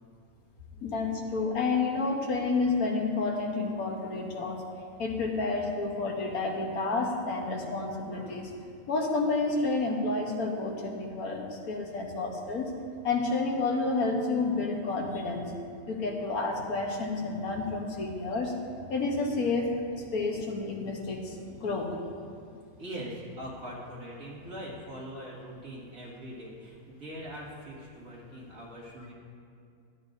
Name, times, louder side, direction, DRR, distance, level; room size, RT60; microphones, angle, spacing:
voice 1, 0.8-4.6 5.0-8.5 8.9-12.7 13.0-15.4 15.9-18.5 18.9-19.8 20.1-21.3 21.6-21.9, left 3 dB, 90° left, 1 dB, 1.6 m, -30 dB
voice 2, 22.8-29.1, equal, 70° right, -6 dB, 2.6 m, -42 dB
12.5 x 11.0 x 2.6 m, 2.3 s
omnidirectional pair, 1.5 m